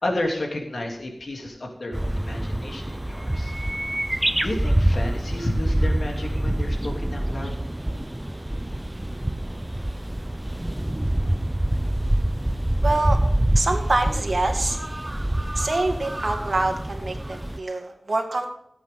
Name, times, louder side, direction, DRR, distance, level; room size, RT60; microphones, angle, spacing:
voice 1, 0.0-3.5 4.4-7.5, left 1 dB, 70° left, 0 dB, 3.2 m, -31 dB
sound 1, 1.9-17.6, right 1 dB, 15° right, 0.6 m, -26 dB
voice 2, 12.8-13.2 13.6-14.8 15.6-18.5, right 2 dB, 55° right, 4 dB, 2.1 m, -25 dB
17.5 x 8.6 x 3.9 m, 0.81 s
wide cardioid pair, 60°, 0 cm